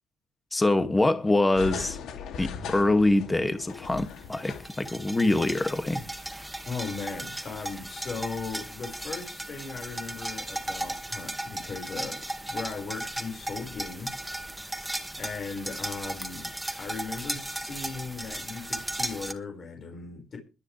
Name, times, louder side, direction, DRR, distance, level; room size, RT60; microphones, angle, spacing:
voice 1, 0.5-2.0 2.4-6.1, left 2 dB, 15° left, 2.1 m, -24 dB
sound 1, 1.5-5.0 5.3-5.4, left 6 dB, 85° left, 2.7 m, -38 dB
sound 2, 3.7-19.3, right 1 dB, 5° right, 1.9 m, -36 dB
voice 2, 6.7-14.2 15.2-16.5 16.8-20.4, left 4 dB, 50° left, 5.2 m, -38 dB
21.5 x 10.0 x 3.4 m
cardioid pair, 90°, 0 cm